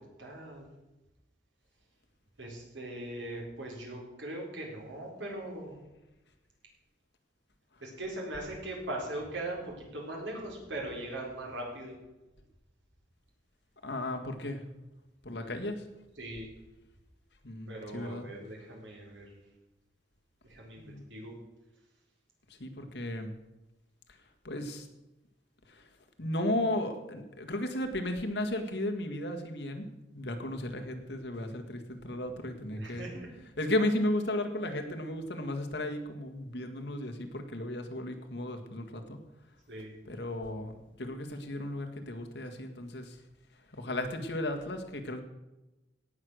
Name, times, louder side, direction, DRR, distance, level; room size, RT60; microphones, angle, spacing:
voice 1, 0.2-0.7 2.4-5.8 7.8-12.0 16.2-16.5 17.7-19.3 20.4-21.4 32.7-33.3 39.7-40.0, right 1 dB, 85° right, -1 dB, 4.4 m, -40 dB
voice 2, 13.8-14.6 15.2-15.8 17.4-18.3 20.8-21.0 22.6-23.3 24.4-24.9 25.7-25.9 26.2-29.9 30.1-33.1 33.6-39.2 40.1-40.7 41.0-43.2 43.7-45.2, left 1 dB, 70° left, 4 dB, 1.7 m, -34 dB
17.5 x 6.4 x 6.4 m, 1.0 s
head